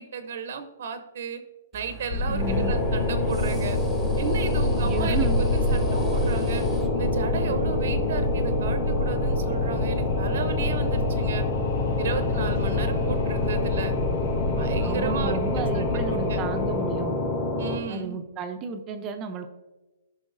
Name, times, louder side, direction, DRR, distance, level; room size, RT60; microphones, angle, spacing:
voice 1, 0.0-1.4 1.7-3.8 4.2-6.6 6.9-11.4 12.0-13.9 14.6-16.4 17.6-18.2, right 6 dB, 65° right, 10 dB, 0.7 m, -34 dB
sound 1, 1.7-6.9, right 2 dB, ahead, 1.1 m, -44 dB
Wind, 2.1-17.4, left 1 dB, 55° left, 1.2 m, -28 dB
voice 2, 2.3-2.7 4.8-5.4 14.8-17.2 17.9-19.5, right 4 dB, 25° right, 6 dB, 0.6 m, -32 dB
sound 2, 2.4-17.8, left 2 dB, 35° left, 2.2 m, -28 dB
13.5 x 5.6 x 2.6 m, 1.1 s
hypercardioid pair, 150°, 0 cm